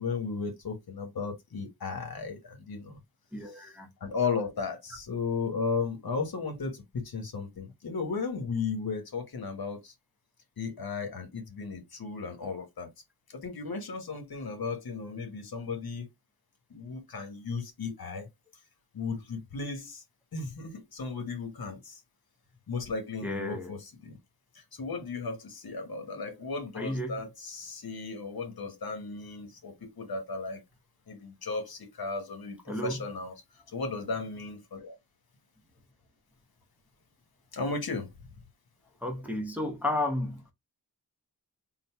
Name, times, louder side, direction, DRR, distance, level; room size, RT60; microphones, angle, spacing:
voice 1, 0.0-3.0 3.5-3.6 4.0-9.9 10.6-12.9 13.3-16.1 16.7-18.3 18.9-20.0 20.3-22.0 22.7-24.2 24.5-30.6 31.1-33.3 33.7-35.0 37.5-38.1, left 4 dB, 65° left, 1.3 m, -35 dB
voice 2, 3.3-3.9 23.2-23.7 26.7-27.2 32.7-33.0 39.0-40.5, left 1 dB, 5° right, 0.7 m, -32 dB
3.9 x 2.2 x 4.5 m
wide cardioid pair, 170°, 39 cm